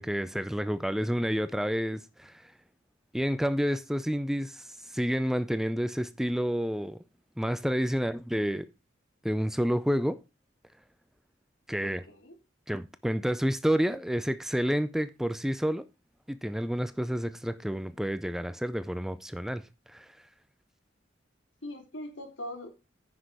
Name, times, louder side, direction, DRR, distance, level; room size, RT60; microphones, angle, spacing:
voice 1, 0.0-2.5 3.1-7.0 7.4-8.7 9.2-10.2 11.7-12.0 12.7-15.9 16.3-19.6 19.9-20.1, equal, ahead, 0.4 m, -29 dB
voice 2, 11.8-12.3 21.6-22.7, left 1 dB, 85° left, 3.2 m, -41 dB
9.8 x 6.2 x 4.8 m
head